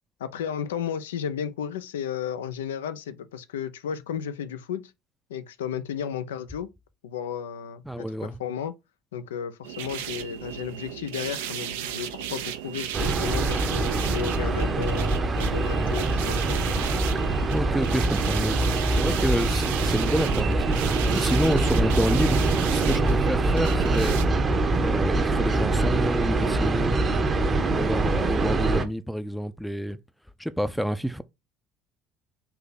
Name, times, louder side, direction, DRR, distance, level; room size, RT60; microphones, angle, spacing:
voice 1, 0.2-4.9 5.3-6.7 7.0-8.7 9.1-16.6, left 8 dB, 80° left, 0.4 m, -33 dB
voice 2, 7.9-8.4 17.5-18.6 18.9-20.8 21.1-24.2 24.8-27.0 27.6-30.0 30.4-31.2, equal, ahead, 0.5 m, -28 dB
sound 1, 9.6-24.2, right 10 dB, 75° right, 0.4 m, -35 dB
sound 2, 12.9-28.9, right 2 dB, 35° right, 0.8 m, -24 dB
3.7 x 2.8 x 4.1 m
figure-of-eight pair, 60°, 0 cm